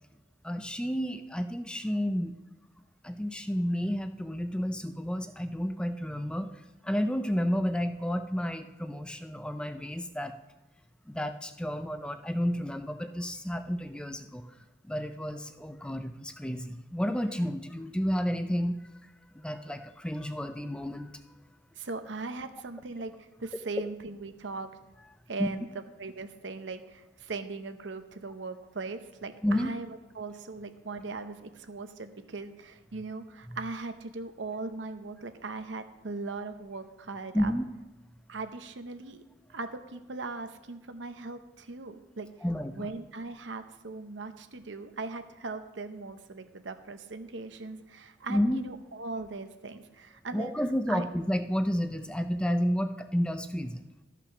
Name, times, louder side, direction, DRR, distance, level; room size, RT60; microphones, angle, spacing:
voice 1, 0.4-2.4 3.0-10.3 11.1-14.6 14.8-21.2 25.4-25.5 29.4-29.7 33.5-33.6 37.3-37.6 42.4-42.9 48.3-48.6 50.3-53.8, equal, 5° left, 9 dB, 0.4 m, -31 dB
voice 2, 21.8-24.7 25.3-37.5 38.3-39.2 39.5-42.3 42.7-50.5 50.9-51.0, right 3 dB, 85° right, 9 dB, 0.8 m, -39 dB
13.0 x 5.9 x 5.8 m, 1.0 s
head